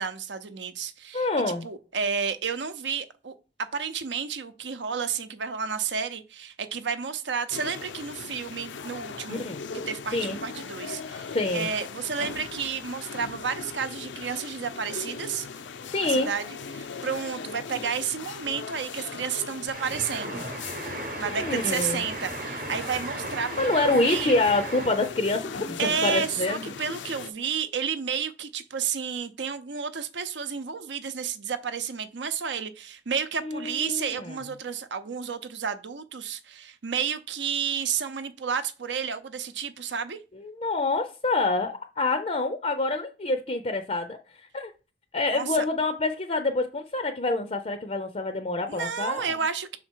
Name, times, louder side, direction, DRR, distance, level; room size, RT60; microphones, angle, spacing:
voice 1, 0.0-1.3 1.6-3.3 3.6-9.5 9.9-11.3 11.5-15.5 16.0-20.4 21.2-24.3 25.8-40.2 45.3-45.7 48.7-49.8, right 6 dB, 75° right, 0.7 m, -31 dB
voice 2, 1.1-1.6 9.3-9.6 10.1-10.4 11.3-11.7 15.9-16.3 21.3-22.0 23.6-26.6 33.4-34.4 40.4-44.2 44.5-44.7 45.1-49.4, left 2 dB, 35° left, 0.5 m, -26 dB
sound 1, 7.5-27.3, left 5 dB, 80° left, 0.5 m, -39 dB
sound 2, 19.7-25.2, right 2 dB, 50° right, 0.9 m, -36 dB
5.8 x 4.3 x 4.5 m
head